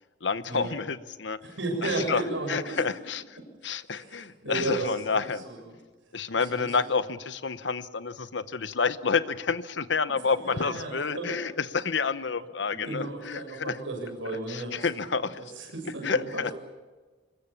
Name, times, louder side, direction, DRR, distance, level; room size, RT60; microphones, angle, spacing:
voice 1, 0.2-1.4 1.8-2.2 2.5-3.4 3.6-5.4 6.1-13.8 14.5-15.4 16.0-16.5, left 5 dB, 65° left, 13 dB, 0.9 m, -29 dB
voice 2, 1.4-2.8 3.9-5.7 6.3-6.8 10.0-11.4 12.7-14.9 15.6-16.5, right 2 dB, 85° right, 2 dB, 7.4 m, -34 dB
25.5 x 22.0 x 7.2 m, 1.3 s
head